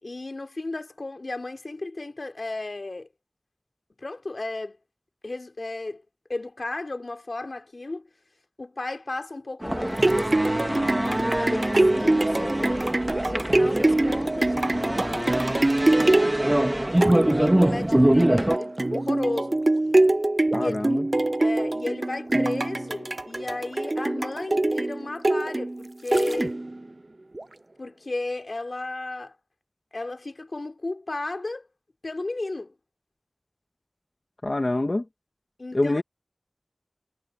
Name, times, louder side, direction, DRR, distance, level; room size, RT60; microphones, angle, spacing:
voice 1, 0.0-3.1 4.0-4.8 5.2-6.0 6.3-8.1 8.6-12.9 13.2-15.4 17.2-19.6 20.6-21.0 21.4-26.6 27.8-29.3 29.9-31.7 32.0-32.7 35.6-36.0, left 2 dB, 85° left, 3.3 m, -34 dB
sound 1, 9.6-18.6, right 1 dB, 25° right, 2.3 m, -24 dB
sound 2, 9.7-26.8 27.4-27.5, right 2 dB, 55° right, 0.4 m, -24 dB
voice 2, 20.5-21.1 34.4-35.0 35.7-36.0, left 2 dB, 60° left, 2.2 m, -25 dB
wide cardioid pair, 45°, 0 cm